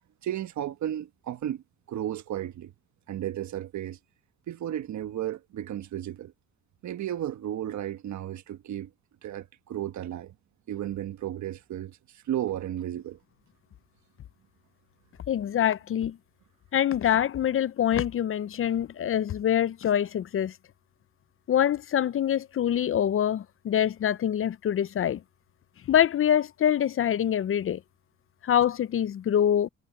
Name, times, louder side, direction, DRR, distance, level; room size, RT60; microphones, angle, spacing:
voice 1, 0.2-2.7 3.1-4.0 4.5-6.3 6.8-8.9 9.2-10.3 10.7-13.2, right 11 dB, 70° right, 1.3 m, -34 dB
voice 2, 15.3-16.2 16.7-20.5 21.5-25.2 25.9-27.8 28.4-29.7, left 10 dB, 45° left, 0.5 m, -25 dB
cardioid pair, 90°, 30 cm